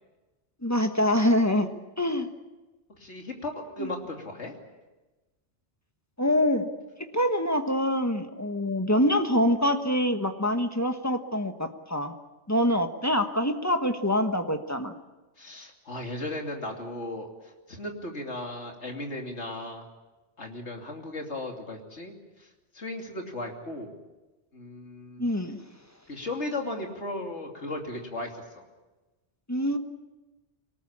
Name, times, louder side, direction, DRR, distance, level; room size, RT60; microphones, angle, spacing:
voice 1, 0.6-1.7 2.0-2.3 3.8-3.9 6.2-6.7 7.1-12.1 12.5-14.9 25.2-25.6 29.5-29.8, equal, 15° left, 6 dB, 1.3 m, -25 dB
voice 2, 3.0-4.5 15.4-19.8 20.4-22.5 22.7-23.9 24.5-25.3 26.1-28.6, left 1 dB, 75° left, 2 dB, 3.1 m, -36 dB
24.5 x 19.0 x 8.7 m, 1.2 s
omnidirectional pair, 1.2 m